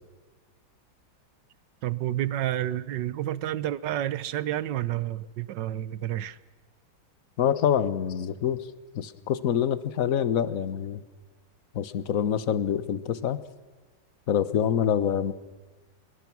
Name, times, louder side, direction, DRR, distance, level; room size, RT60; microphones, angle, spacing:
voice 1, 1.8-6.4, right 12 dB, 65° right, 17 dB, 1.4 m, -30 dB
voice 2, 7.4-8.6 8.9-11.0 11.7-13.4 14.3-15.3, left 9 dB, 50° left, 15 dB, 1.3 m, -26 dB
24.5 x 23.0 x 6.2 m, 1.4 s
omnidirectional pair, 2.2 m